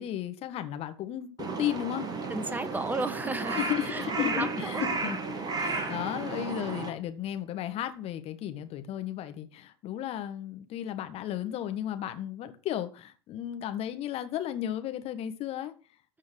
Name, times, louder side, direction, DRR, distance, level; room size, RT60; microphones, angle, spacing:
voice 1, 0.0-2.1 3.5-5.2 5.5-15.7, left 11 dB, 45° left, 1.5 m, -34 dB
Crow, 1.4-6.9, right 3 dB, 25° right, 2.6 m, -33 dB
voice 2, 2.3-4.9 5.6-5.9, right 2 dB, 10° right, 1.2 m, -34 dB
13.5 x 4.6 x 6.4 m
figure-of-eight pair, 75°, 15 cm